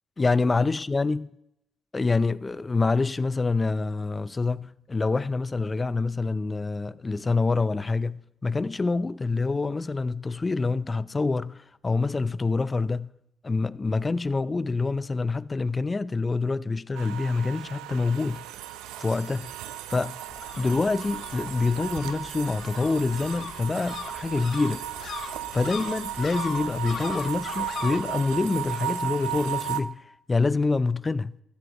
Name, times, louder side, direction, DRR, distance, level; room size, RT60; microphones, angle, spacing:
voice 1, 0.2-1.3 1.9-13.1 13.4-18.5 19.0-19.5 19.9-20.2 20.6-24.9 25.5-30.0 30.3-31.3, left 3 dB, 30° left, 0.5 m, -26 dB
sound 1, 16.9-29.8, right 11 dB, 90° right, 0.6 m, -35 dB
sound 2, 20.3-28.0, left 6 dB, 60° left, 1.2 m, -40 dB
15.0 x 13.0 x 3.0 m
supercardioid pair, 65°, 0 cm